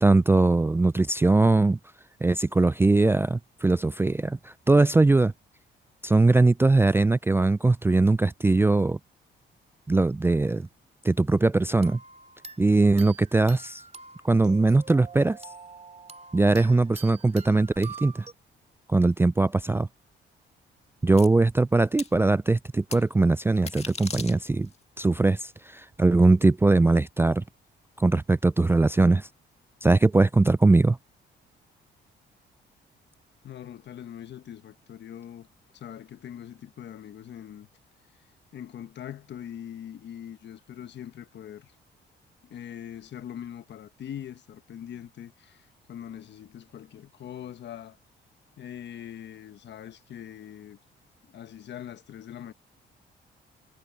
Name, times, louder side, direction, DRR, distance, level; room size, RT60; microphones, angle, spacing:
voice 1, 0.0-1.8 2.2-5.3 6.0-9.0 9.9-10.7 11.0-12.0 12.6-13.8 14.2-15.4 16.3-18.2 18.9-19.9 21.0-24.7 25.0-27.4 28.0-29.3 29.8-31.0, right 3 dB, 10° right, 0.3 m, -21 dB
sound 1, 11.8-18.3, right 5 dB, 35° right, 3.2 m, -45 dB
sound 2, 21.2-21.3 22.0-22.1 22.9-23.0 23.5-24.8, left 4 dB, 30° left, 2.1 m, -37 dB
voice 2, 33.4-35.5 35.7-37.7 38.5-41.7 42.4-48.0 48.6-50.8 51.2-52.5, left 10 dB, 60° left, 1.2 m, -42 dB
cardioid pair, 90°, 20 cm